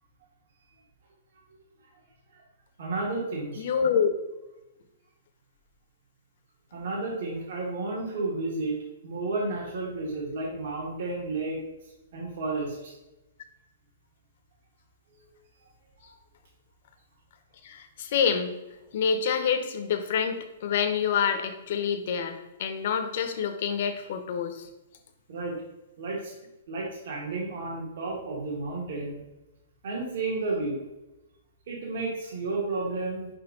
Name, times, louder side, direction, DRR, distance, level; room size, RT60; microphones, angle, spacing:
voice 1, 2.8-3.6 6.7-8.8 9.0-11.6 12.1-12.9 15.1-15.3 16.0-16.1 25.3-25.6 26.0-26.3 26.7-29.2 29.8-30.8 31.7-33.3, right 3 dB, 45° right, -2 dB, 1.5 m, -32 dB
voice 2, 3.6-4.1 17.6-18.6 18.9-24.7, left 7 dB, 40° left, 7 dB, 0.7 m, -27 dB
5.2 x 4.3 x 5.3 m, 0.98 s
hypercardioid pair, 180°, 0 cm